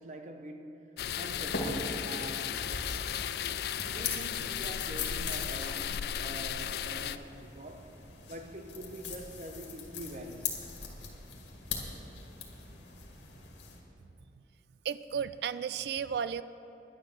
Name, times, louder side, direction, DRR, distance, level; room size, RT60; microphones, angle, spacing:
voice 1, 0.0-2.7 3.9-8.0 8.3-10.7, right 1 dB, 40° right, 0.9 m, -45 dB
sound 1, 1.0-7.2, left 9 dB, 60° left, 0.3 m, -35 dB
sound 2, 1.1-13.8, left 4 dB, 75° left, 1.9 m, -41 dB
voice 2, 14.8-16.4, right 7 dB, 65° right, 0.3 m, -33 dB
11.0 x 10.0 x 6.2 m
head